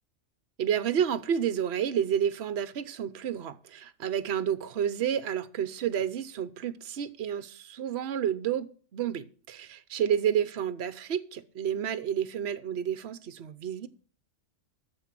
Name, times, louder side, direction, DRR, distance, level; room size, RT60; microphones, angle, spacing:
voice 1, 0.6-13.9, right 9 dB, 60° right, 1.0 m, -30 dB
13.5 x 4.6 x 8.8 m
omnidirectional pair, 1.3 m